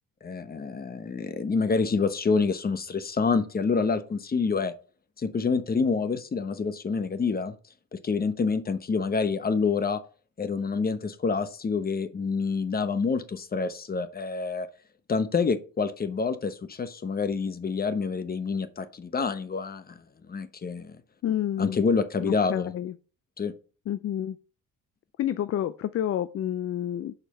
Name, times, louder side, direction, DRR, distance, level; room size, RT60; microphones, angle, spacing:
voice 1, 0.2-4.7 5.2-7.5 7.9-10.0 10.4-14.7 15.1-20.0 20.3-21.0 21.6-22.7 23.4-23.5, left 4 dB, 30° left, 0.9 m, -27 dB
voice 2, 21.2-21.8 22.2-22.9 23.9-24.4 25.2-27.1, left 11 dB, 50° left, 0.4 m, -29 dB
6.7 x 4.4 x 5.3 m
cardioid pair, 90°, 30 cm